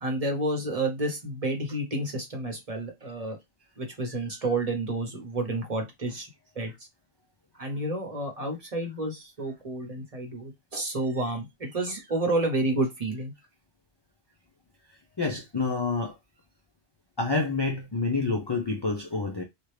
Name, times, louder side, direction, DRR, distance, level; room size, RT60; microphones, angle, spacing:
voice 1, 0.0-3.4 3.8-6.3 6.6-6.7 7.6-13.3, right 2 dB, 40° right, 0.9 m, -30 dB
voice 2, 15.2-16.1 17.2-19.4, left 3 dB, 35° left, 0.4 m, -28 dB
2.9 x 2.4 x 3.2 m
omnidirectional pair, 1.1 m